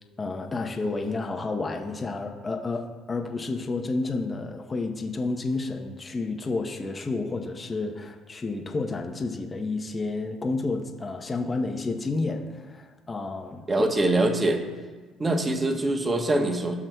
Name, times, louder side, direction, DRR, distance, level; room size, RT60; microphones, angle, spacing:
voice 1, 0.2-13.9, left 3 dB, 30° left, 3 dB, 0.8 m, -30 dB
voice 2, 13.7-14.6 15.2-16.7, right 2 dB, 25° right, 5 dB, 1.1 m, -23 dB
15.0 x 6.0 x 2.3 m, 1.3 s
supercardioid pair, 80°, 0 cm